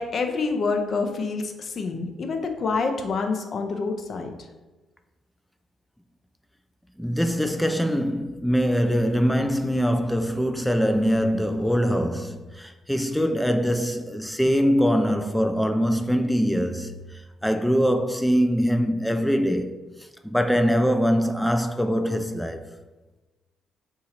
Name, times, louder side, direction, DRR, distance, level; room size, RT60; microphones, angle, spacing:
voice 1, 0.0-4.3, left 4 dB, 50° left, 0.6 m, -27 dB
voice 2, 7.0-19.7 20.2-22.7, equal, 5° left, 0.3 m, -23 dB
3.8 x 2.8 x 4.3 m
cardioid pair, 90°, 0 cm